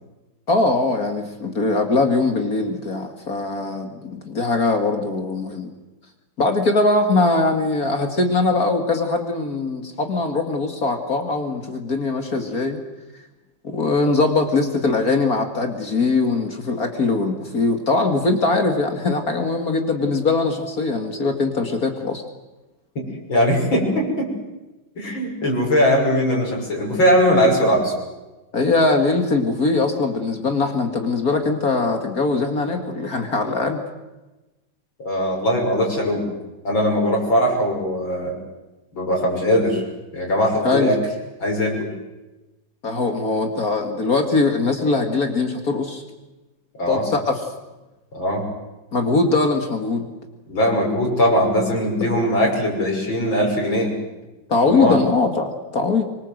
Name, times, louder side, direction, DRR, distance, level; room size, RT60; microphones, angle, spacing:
voice 1, 0.5-5.7 6.4-12.8 13.6-22.2 28.5-33.8 40.6-40.9 42.8-46.0 46.9-47.4 48.9-50.1 52.0-52.1 54.5-56.0, left 3 dB, 45° left, 5 dB, 2.5 m, -21 dB
voice 2, 23.0-24.3 25.0-27.9 35.0-36.3 36.6-38.4 38.9-39.8 40.1-41.0 41.4-41.9 46.8-47.1 48.1-48.5 50.5-53.9 54.6-55.0, equal, 80° left, -1 dB, 7.3 m, -20 dB
25.5 x 23.5 x 7.9 m, 1.1 s
omnidirectional pair, 2.1 m